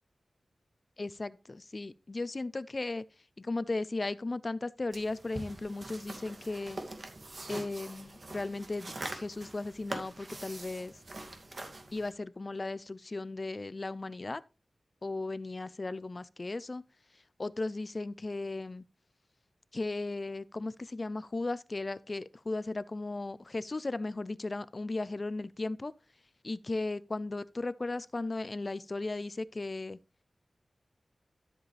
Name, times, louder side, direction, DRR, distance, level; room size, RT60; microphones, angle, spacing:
voice 1, 1.0-3.0 3.4-6.8 7.5-10.9 11.9-14.4 15.0-16.8 17.4-18.8 19.7-25.9 26.4-30.0, left 2 dB, 40° left, 0.5 m, -36 dB
sound 1, 4.9-12.1, right 2 dB, 50° right, 2.4 m, -44 dB
12.5 x 7.6 x 3.4 m
wide cardioid pair, 75°, 0 cm